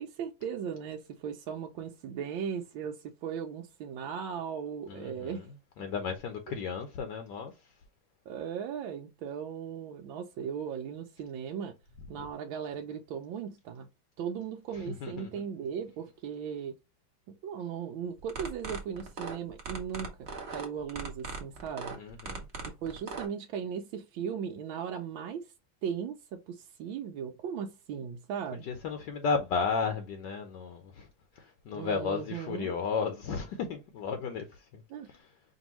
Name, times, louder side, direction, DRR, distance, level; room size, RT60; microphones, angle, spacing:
voice 1, 0.0-5.5 8.3-11.8 12.1-13.9 14.2-16.8 17.4-22.0 22.7-25.5 25.8-28.7 31.7-32.7 34.9-35.1, right 7 dB, 85° right, 1.4 m, -37 dB
voice 2, 4.9-5.3 5.8-7.5 12.2-12.3 14.7-15.3 22.0-22.4 28.6-31.1 31.4-34.8 35.1-35.3, left 5 dB, 70° left, 1.3 m, -34 dB
sound 1, 18.2-23.3, right 4 dB, 40° right, 1.1 m, -39 dB
5.2 x 2.7 x 3.0 m
omnidirectional pair, 2.1 m